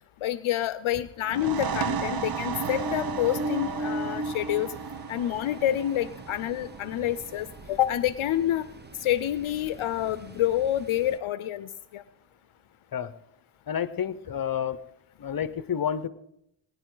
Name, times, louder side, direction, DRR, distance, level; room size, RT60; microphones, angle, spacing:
voice 1, 0.2-4.7 5.1-8.7 9.0-12.0, left 12 dB, 75° left, 15 dB, 0.6 m, -28 dB
sound 1, 1.2-8.6, right 6 dB, 45° right, 1.0 m, -35 dB
Ocean, 2.6-11.2, right 1 dB, 20° right, 0.9 m, -38 dB
voice 2, 13.7-14.8 15.2-16.1, left 8 dB, 45° left, 15 dB, 0.8 m, -29 dB
19.5 x 11.0 x 3.8 m, 0.78 s
cardioid pair, 65°, 50 cm